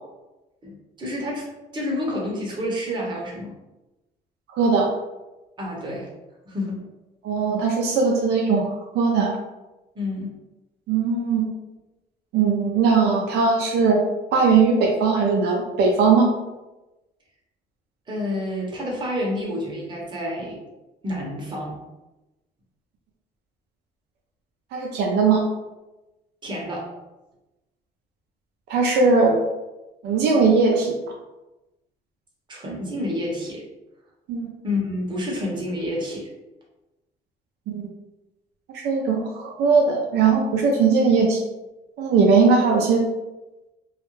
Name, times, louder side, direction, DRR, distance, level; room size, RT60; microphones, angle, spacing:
voice 1, 0.6-3.5 5.6-6.1 6.5-6.8 9.9-10.3 18.1-20.6 21.0-21.8 26.4-26.9 32.5-33.6 34.6-36.3, left 1 dB, 25° right, -3 dB, 0.8 m, -29 dB
voice 2, 4.5-4.9 7.2-9.3 10.9-11.5 12.3-14.0 14.3-16.3 24.7-25.5 28.7-29.4 30.0-31.0 34.3-34.5 37.7-37.9 38.8-41.4 42.0-43.0, right 4 dB, 75° right, 0 dB, 0.5 m, -19 dB
2.3 x 2.0 x 3.0 m, 1.0 s
cardioid pair, 110°, 17 cm